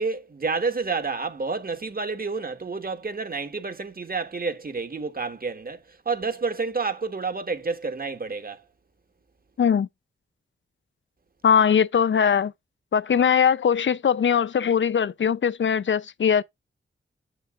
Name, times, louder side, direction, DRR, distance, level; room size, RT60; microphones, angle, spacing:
voice 1, 0.0-8.6, right 4 dB, 45° right, 1.5 m, -29 dB
voice 2, 9.6-9.9 11.4-12.5 12.9-16.4, left 7 dB, 65° left, 0.6 m, -21 dB
7.4 x 6.8 x 2.4 m
cardioid pair, 55°, 21 cm